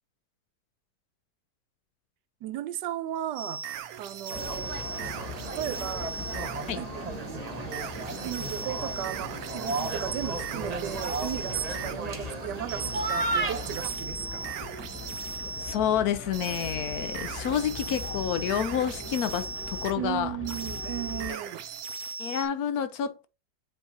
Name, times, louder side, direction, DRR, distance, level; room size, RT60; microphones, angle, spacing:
voice 1, 2.4-3.6 4.0-4.8 5.4-6.1 6.8-7.1 8.2-14.7 20.0-21.7, right 12 dB, 90° right, 1.2 m, -35 dB
sound 1, 3.4-6.8 7.7-12.0 12.7-15.8 16.3-20.0 20.4-22.5, right 5 dB, 65° right, 1.1 m, -38 dB
sound 2, 4.3-21.3, left 3 dB, 10° left, 0.7 m, -41 dB
sound 3, 4.3-13.9, right 3 dB, 35° right, 0.6 m, -35 dB
voice 2, 15.6-20.3 22.2-23.3, left 9 dB, 70° left, 1.0 m, -29 dB
8.0 x 4.3 x 2.8 m
omnidirectional pair, 1.8 m